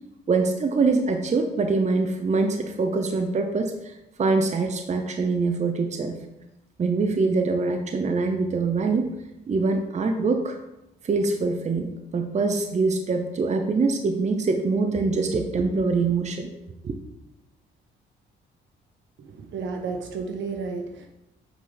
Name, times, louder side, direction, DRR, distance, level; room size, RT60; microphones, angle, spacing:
voice 1, 0.3-6.2 6.8-9.1 9.5-10.6 11.0-16.5 16.8-16.9, right 3 dB, 35° right, 5 dB, 0.8 m, -24 dB
voice 2, 19.3-21.1, right 4 dB, 70° right, 3 dB, 1.3 m, -32 dB
8.2 x 5.1 x 4.0 m, 0.93 s
cardioid pair, 90°, 20 cm